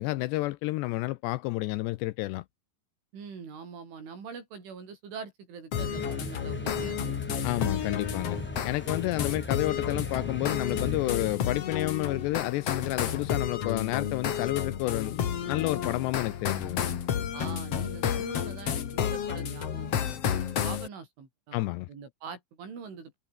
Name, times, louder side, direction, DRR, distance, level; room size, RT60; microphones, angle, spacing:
voice 1, 0.0-2.4 7.4-16.9 21.5-21.9, left 19 dB, 80° left, 2.5 m, -30 dB
voice 2, 3.1-7.2 17.3-21.6 21.9-23.2, right 5 dB, 85° right, 8.9 m, -43 dB
sound 1, 5.7-20.9, left 8 dB, 55° left, 1.7 m, -31 dB
sound 2, 5.8-11.4, left 1 dB, 15° left, 0.3 m, -39 dB
sound 3, 7.9-19.4, left 5 dB, 35° left, 4.6 m, -54 dB
omnidirectional pair, 5.4 m